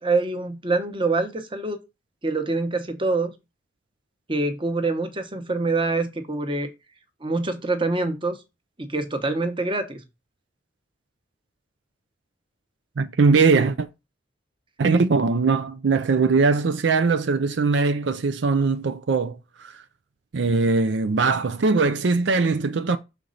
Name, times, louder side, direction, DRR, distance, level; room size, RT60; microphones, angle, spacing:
voice 1, 0.0-1.8 2.2-3.3 4.3-6.7 7.2-8.4 8.8-10.0, right 3 dB, 30° right, 1.0 m, -25 dB
voice 2, 13.0-13.9 14.8-19.8 20.3-23.0, right 4 dB, 75° right, 0.5 m, -21 dB
6.4 x 4.5 x 3.9 m
head